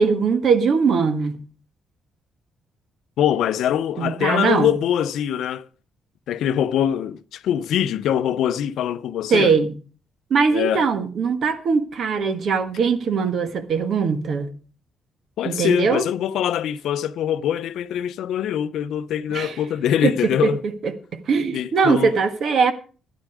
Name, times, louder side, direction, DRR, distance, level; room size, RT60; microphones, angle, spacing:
voice 1, 0.0-1.4 4.0-4.8 9.3-9.7 10.3-14.5 15.4-16.0 19.3-19.6 20.0-22.7, right 5 dB, 60° right, 1.6 m, -21 dB
voice 2, 3.2-5.7 6.3-9.6 10.5-10.9 15.4-20.6 21.5-22.1, left 10 dB, 80° left, 0.6 m, -23 dB
12.0 x 10.5 x 4.9 m
cardioid pair, 90°, 0 cm